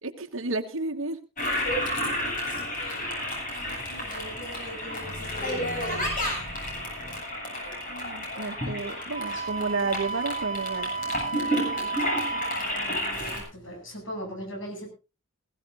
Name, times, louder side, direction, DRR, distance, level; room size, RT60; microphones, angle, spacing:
voice 1, 0.0-1.2 7.9-10.9, right 3 dB, 70° right, 4 dB, 1.3 m, -31 dB
voice 2, 1.4-2.2 2.8-3.2 3.6-5.9 12.6-14.9, equal, 65° left, 3 dB, 7.9 m, -41 dB
Toilet flush, 1.4-13.4, equal, 40° left, 7.7 m, -31 dB
Wind instrument woodwind instrument, 9.1-12.7, right 4 dB, 80° left, 1.6 m, -32 dB
21.5 x 15.5 x 2.6 m, 0.31 s
head